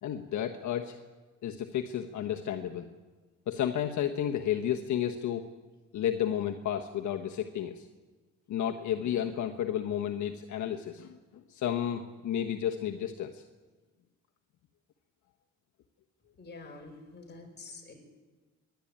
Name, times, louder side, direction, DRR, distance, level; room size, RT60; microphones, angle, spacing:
voice 1, 0.0-1.0 1.4-2.9 3.5-5.5 5.9-7.9 8.5-13.4, left 10 dB, 70° left, 4 dB, 1.3 m, -32 dB
voice 2, 16.4-17.9, left 3 dB, 35° left, 1 dB, 6.0 m, -47 dB
26.5 x 11.5 x 8.9 m, 1.3 s
cardioid pair, 90°, 30 cm